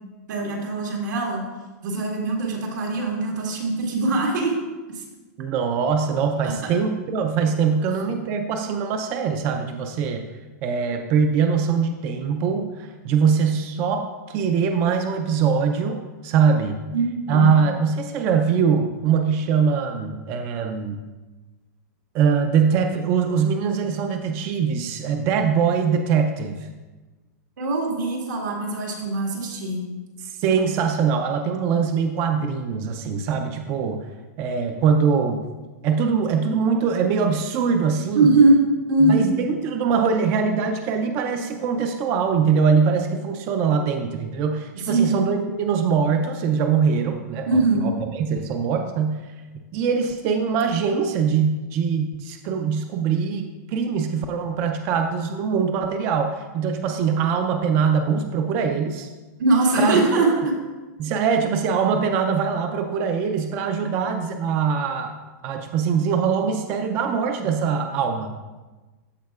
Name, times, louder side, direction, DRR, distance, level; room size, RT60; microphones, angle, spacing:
voice 1, 0.3-1.4 1.8-4.5 4.9-5.0 6.4-6.7 16.9-17.5 27.6-29.8 38.1-39.2 44.7-45.2 47.5-47.9 59.4-60.6, right 2 dB, 80° right, -1 dB, 1.8 m, -21 dB
voice 2, 5.4-10.2 10.6-16.8 17.3-21.0 22.1-26.7 30.2-34.1 34.4-35.4 35.8-38.3 39.0-49.3 49.7-59.1 59.8-60.0 61.0-65.1 65.4-68.3, right 6 dB, 20° right, 5 dB, 0.3 m, -22 dB
14.0 x 4.6 x 2.3 m, 1.2 s
supercardioid pair, 170°, 10 cm